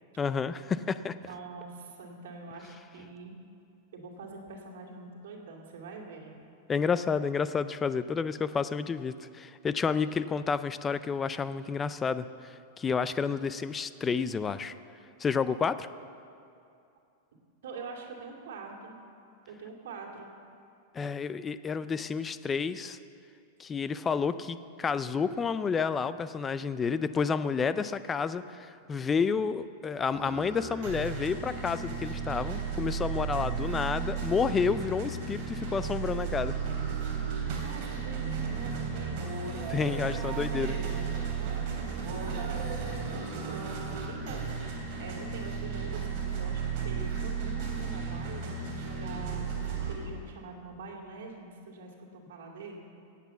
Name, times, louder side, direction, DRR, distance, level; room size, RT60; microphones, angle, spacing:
voice 1, 0.2-1.1 6.7-14.7 15.2-15.9 20.9-23.0 23.6-36.5 39.7-40.8, left 5 dB, 10° left, 14 dB, 0.3 m, -30 dB
voice 2, 1.2-3.4 3.9-6.4 17.6-19.0 19.5-20.3 37.6-39.4 41.3-44.5 45.0-52.9, right 4 dB, 75° right, 0 dB, 2.5 m, -44 dB
sound 1, 30.1-49.9, right 6 dB, 35° right, 3.0 m, -34 dB
17.5 x 8.4 x 6.9 m, 2.6 s
supercardioid pair, 175°, 0 cm